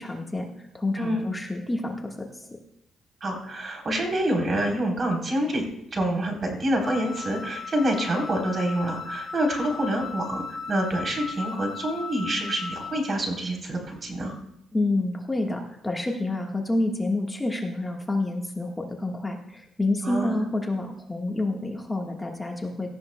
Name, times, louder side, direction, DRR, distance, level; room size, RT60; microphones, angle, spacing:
voice 1, 0.0-2.5 14.7-22.9, left 2 dB, 15° left, 1 dB, 1.4 m, -28 dB
voice 2, 3.2-14.3 20.0-20.4, right 1 dB, 40° right, 1 dB, 3.6 m, -27 dB
Wind instrument woodwind instrument, 6.8-13.1, left 4 dB, 50° left, 1.4 m, -37 dB
17.5 x 13.0 x 2.2 m, 0.80 s
cardioid pair, 90°, 0 cm